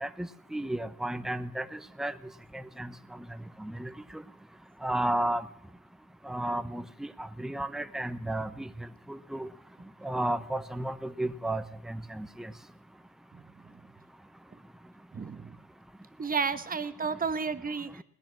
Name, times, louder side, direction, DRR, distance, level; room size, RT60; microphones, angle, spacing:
voice 1, 0.0-2.1 2.5-2.9 3.6-4.2 4.8-5.5 6.3-9.5 10.0-12.5, right 1 dB, ahead, 12 dB, 0.8 m, -33 dB
voice 2, 15.1-15.6 16.2-18.0, right 5 dB, 30° right, 12 dB, 1.1 m, -32 dB
18.0 x 10.0 x 7.5 m, 0.75 s
cardioid pair, 90°, 30 cm